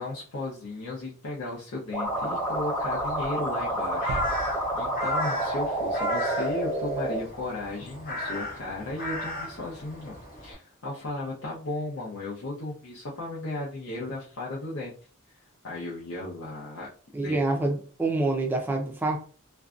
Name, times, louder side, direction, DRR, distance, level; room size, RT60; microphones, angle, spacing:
voice 1, 0.0-14.9 15.6-16.9 17.2-17.4, left 2 dB, 75° left, -6 dB, 0.6 m, -35 dB
sound 1, 1.9-7.2, right 1 dB, 10° left, 0.9 m, -29 dB
Crow, 2.1-10.5, left 1 dB, 40° left, 0.8 m, -36 dB
sound 2, 4.1-6.8, right 2 dB, 80° right, 0.3 m, -40 dB
voice 2, 17.1-19.2, right 2 dB, 10° right, 1 dB, 0.4 m, -26 dB
2.5 x 2.2 x 2.4 m, 0.40 s
head